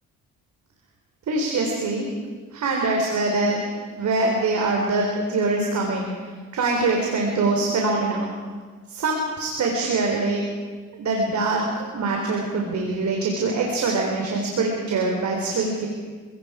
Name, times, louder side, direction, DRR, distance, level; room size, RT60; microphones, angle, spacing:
voice 1, 1.3-2.1 2.5-8.4 8.9-10.4 11.0-11.6 11.9-15.9, right 3 dB, 65° right, 0 dB, 3.7 m, -24 dB
30.0 x 17.5 x 4.9 m, 1.5 s
cardioid pair, 75°, 31 cm